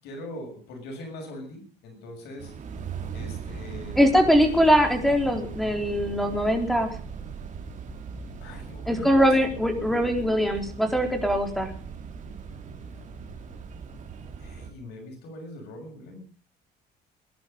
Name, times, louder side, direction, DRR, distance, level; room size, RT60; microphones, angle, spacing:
voice 1, 0.0-2.5 3.1-4.0 5.6-5.8 8.4-9.1 12.5-13.6 13.9-16.2, left 1 dB, 80° left, 3 dB, 6.9 m, -42 dB
sound 1, 2.4-14.7, right 5 dB, 45° right, 3.2 m, -39 dB
voice 2, 4.0-6.9 8.9-11.7, equal, ahead, 4 dB, 4.1 m, -22 dB
21.5 x 11.5 x 5.4 m, 0.41 s
cardioid pair, 110°, 17 cm